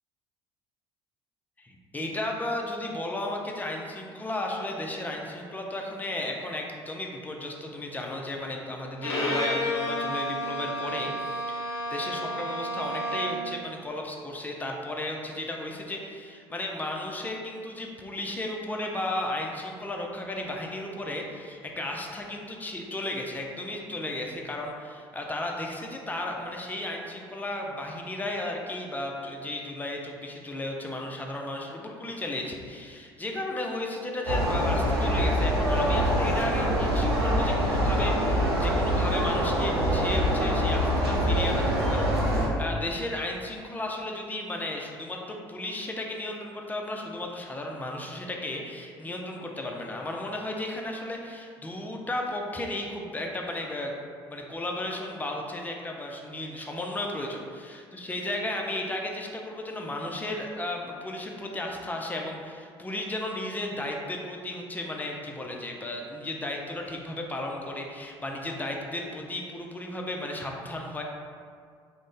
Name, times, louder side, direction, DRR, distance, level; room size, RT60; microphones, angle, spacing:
voice 1, 1.6-53.9 54.3-71.0, left 1 dB, 15° left, 0 dB, 0.4 m, -34 dB
Bowed string instrument, 9.0-13.5, equal, 90° left, 0.4 m, -31 dB
sound 1, 34.3-42.5, equal, 90° right, 0.5 m, -24 dB
2.5 x 2.0 x 3.7 m, 2.1 s
hypercardioid pair, 60°, 13 cm